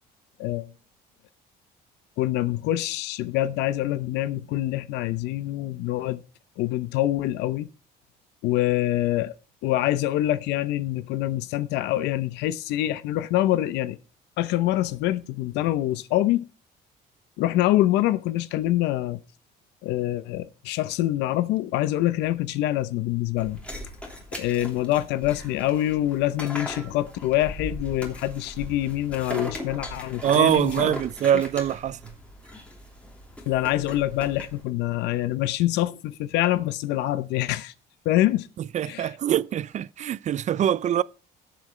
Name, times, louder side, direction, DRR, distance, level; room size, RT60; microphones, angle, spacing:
voice 1, 0.4-0.7 2.2-6.2 6.6-7.7 8.4-9.3 9.6-14.0 14.4-16.5 17.4-19.2 19.8-23.6 24.4-30.9 33.5-37.7 38.0-38.5 38.9-39.1, left 14 dB, 90° left, 0.8 m, -25 dB
sound 1, 23.4-34.6, left 1 dB, 5° left, 3.1 m, -39 dB
voice 2, 30.2-32.0 38.7-41.0, right 10 dB, 45° right, 0.4 m, -23 dB
17.5 x 7.1 x 3.2 m
cardioid pair, 110°, 17 cm